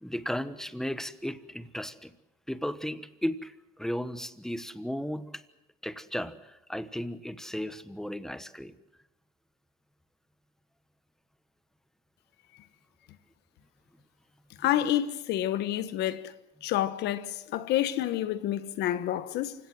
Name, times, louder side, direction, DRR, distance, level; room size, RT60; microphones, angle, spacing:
voice 1, 0.0-2.1 2.5-5.4 5.8-8.7, equal, 5° left, 1.2 m, -35 dB
voice 2, 14.6-16.3 16.6-19.5, left 12 dB, 80° left, 1.3 m, -28 dB
27.5 x 17.0 x 7.6 m
cardioid pair, 110°, 17 cm